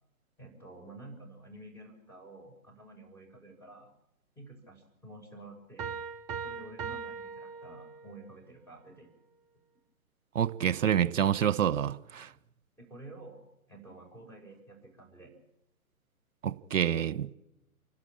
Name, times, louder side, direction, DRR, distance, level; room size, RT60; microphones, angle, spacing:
voice 1, 0.4-3.9 4.3-5.9 6.4-9.1 12.8-13.4 13.7-15.3, right 2 dB, 5° left, 6.7 m, -50 dB
sound 1, 5.8-8.3, right 6 dB, 20° right, 0.8 m, -40 dB
voice 2, 10.3-12.3 16.4-17.4, right 9 dB, 60° right, 1.1 m, -27 dB
28.5 x 12.5 x 8.7 m
hypercardioid pair, 135°, 44 cm